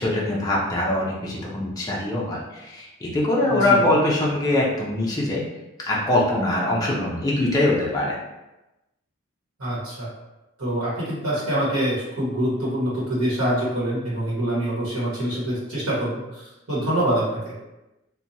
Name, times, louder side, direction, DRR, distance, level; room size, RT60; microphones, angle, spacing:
voice 1, 0.0-5.4 5.8-8.2, left 1 dB, 15° left, -5 dB, 0.4 m, -22 dB
voice 2, 3.5-3.8 9.6-10.1 10.6-17.5, right 1 dB, 80° right, -8 dB, 1.1 m, -25 dB
2.8 x 2.2 x 2.6 m, 1.0 s
head